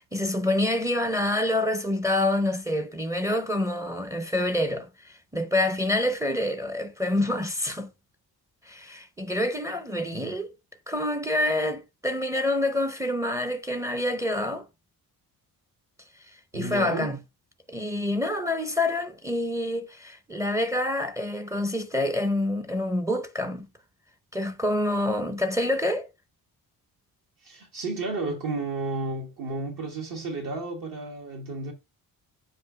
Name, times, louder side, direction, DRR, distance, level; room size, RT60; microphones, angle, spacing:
voice 1, 0.0-7.9 8.7-10.5 10.9-14.7 16.5-17.2 17.7-23.7 24.3-26.1, left 1 dB, 10° right, 0.5 m, -27 dB
voice 2, 16.5-17.2 27.4-31.7, right 2 dB, 60° right, 1.6 m, -32 dB
7.6 x 2.7 x 5.0 m
cardioid pair, 140°, 38 cm